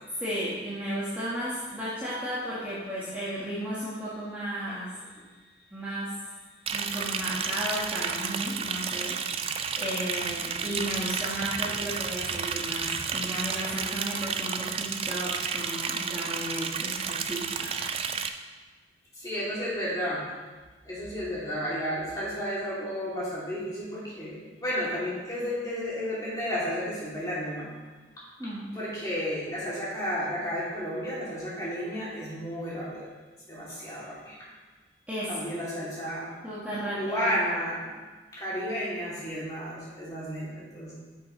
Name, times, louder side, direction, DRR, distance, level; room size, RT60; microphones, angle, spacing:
voice 1, 0.2-4.9 5.7-6.2 6.7-18.0 28.4-28.8 35.1-35.5 36.4-37.4, equal, 10° right, -10 dB, 1.4 m, -34 dB
Liquid, 6.7-18.3, right 6 dB, 30° right, 0.3 m, -32 dB
voice 2, 19.1-20.3 20.8-27.7 28.7-33.1 33.5-34.4 35.3-36.3 36.9-37.9 38.3-40.9, equal, 20° left, -8 dB, 2.6 m, -32 dB
10.5 x 6.2 x 3.1 m, 1.3 s
head